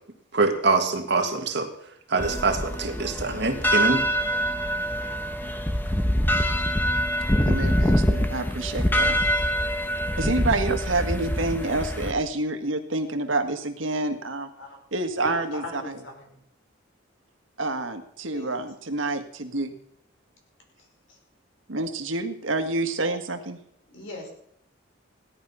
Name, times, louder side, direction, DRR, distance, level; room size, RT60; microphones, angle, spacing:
voice 1, 0.3-1.7 2.1-4.0, right 3 dB, 60° right, 5 dB, 2.0 m, -24 dB
sound 1, 2.2-12.1, equal, 10° left, 1.0 m, -24 dB
voice 2, 7.4-9.2 10.2-14.5 14.9-15.8 17.6-19.7 21.7-23.6, right 2 dB, 80° right, 7 dB, 1.8 m, -28 dB
voice 3, 15.2-16.4 18.2-18.5 20.8-21.2 23.9-24.3, left 2 dB, 80° left, 1 dB, 5.5 m, -40 dB
17.0 x 11.5 x 5.6 m, 0.70 s
head